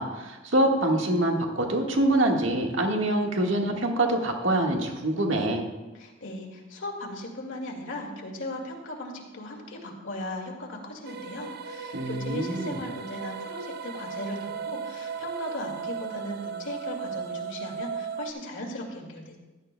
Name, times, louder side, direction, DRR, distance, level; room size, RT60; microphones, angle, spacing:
voice 1, 0.0-5.7 11.9-12.8, right 1 dB, 85° right, 1 dB, 1.6 m, -25 dB
voice 2, 5.9-19.4, left 1 dB, 75° left, 0 dB, 2.2 m, -37 dB
sound 1, 11.0-18.3, right 6 dB, 55° right, 0.5 m, -36 dB
15.5 x 11.5 x 2.2 m, 1.1 s
head